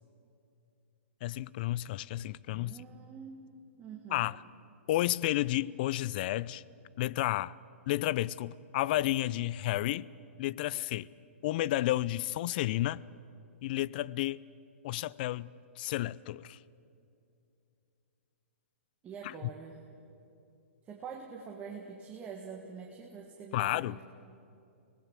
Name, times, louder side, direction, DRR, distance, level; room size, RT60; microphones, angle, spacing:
voice 1, 1.2-2.8 4.1-4.4 4.9-6.6 7.0-7.5 7.9-10.1 10.4-11.1 11.4-13.0 13.6-14.4 14.8-15.5 15.8-16.6 19.2-19.3 23.5-24.0, left 15 dB, 40° left, 0.5 m, -31 dB
voice 2, 2.5-3.5 3.8-4.3 19.0-19.8 20.9-24.0, right 6 dB, 20° right, 1.8 m, -45 dB
25.5 x 19.0 x 7.6 m
hypercardioid pair, 150°, 7 cm